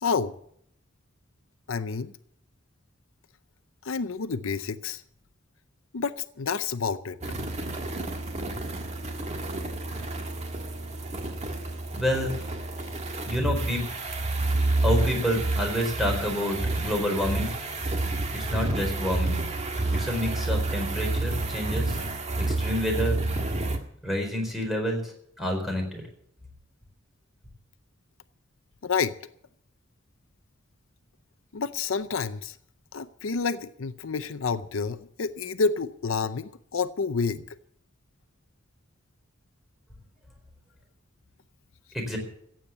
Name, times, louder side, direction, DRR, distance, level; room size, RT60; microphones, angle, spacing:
voice 1, 0.0-0.3 1.7-2.1 3.8-5.0 5.9-7.2 28.8-29.1 31.5-32.6 32.9-37.4, left 5 dB, 75° left, 0.6 m, -29 dB
sound 1, 7.2-23.8, right 2 dB, 35° right, 1.8 m, -29 dB
voice 2, 11.9-12.3 13.3-13.8 14.8-17.5 18.3-19.4 19.9-22.0 22.4-23.2 24.0-25.0 25.4-26.0 41.9-42.2, equal, ahead, 4.3 m, -28 dB
15.0 x 8.8 x 8.4 m
head